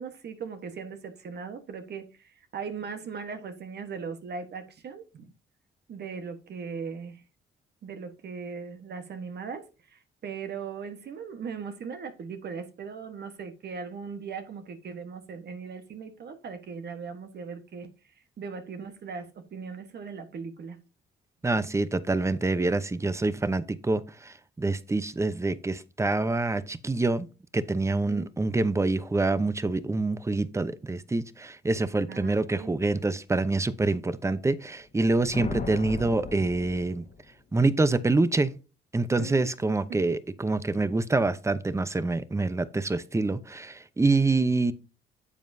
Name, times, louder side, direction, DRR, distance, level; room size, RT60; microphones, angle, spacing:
voice 1, 0.0-5.3 5.9-7.2 7.8-17.9 18.4-20.8 28.1-28.3 32.1-32.7 39.1-39.5 39.9-40.2, right 5 dB, 55° right, 1.3 m, -39 dB
voice 2, 21.4-27.3 27.5-37.1 37.5-38.5 38.9-44.7, right 3 dB, 15° right, 0.7 m, -26 dB
sound 1, 34.9-37.4, left 4 dB, 40° left, 1.5 m, -37 dB
9.9 x 7.4 x 2.7 m
cardioid pair, 90°, 20 cm